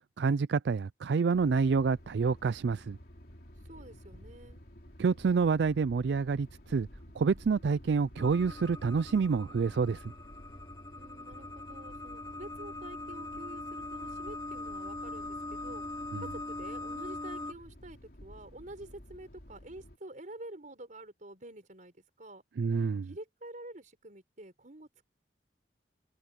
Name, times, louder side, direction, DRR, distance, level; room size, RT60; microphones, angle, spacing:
voice 1, 0.2-3.0 5.0-6.9 7.2-10.0 16.1-16.2 22.6-23.1, right 5 dB, 70° right, 0.4 m, -28 dB
sound 1, 1.3-20.0, equal, 60° left, 3.1 m, -52 dB
voice 2, 3.6-4.6 11.0-15.8 16.2-22.4 22.8-25.0, right 1 dB, 45° right, 4.8 m, -48 dB
sound 2, 8.2-17.5, left 2 dB, 20° left, 5.1 m, -41 dB
head